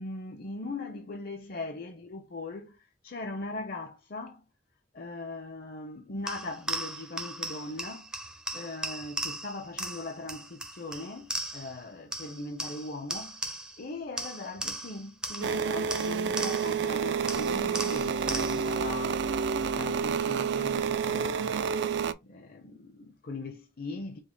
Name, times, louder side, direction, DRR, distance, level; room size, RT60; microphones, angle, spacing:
voice 1, 0.0-4.5 4.9-8.2 8.5-13.4 13.8-19.3 19.5-21.8 22.2-24.2, left 2 dB, 55° left, 0.6 m, -40 dB
sound 1, 6.3-11.8 12.1-13.8 14.2-16.9 17.3-18.8, right 1 dB, 5° right, 0.4 m, -37 dB
sound 2, 15.4-22.1, right 6 dB, 75° right, 0.4 m, -29 dB
5.1 x 2.1 x 3.8 m
head